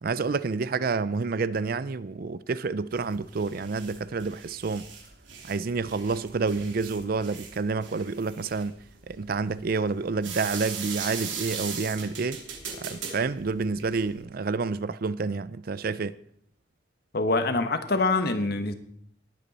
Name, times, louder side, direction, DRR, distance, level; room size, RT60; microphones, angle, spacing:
voice 1, 0.0-4.9 5.5-8.8 9.1-12.4 12.8-16.1, right 4 dB, 50° right, 0.5 m, -29 dB
sound 1, 2.9-14.2, right 6 dB, 85° right, 2.9 m, -39 dB
voice 2, 17.1-18.7, left 3 dB, 55° left, 1.2 m, -25 dB
19.5 x 8.4 x 4.2 m
head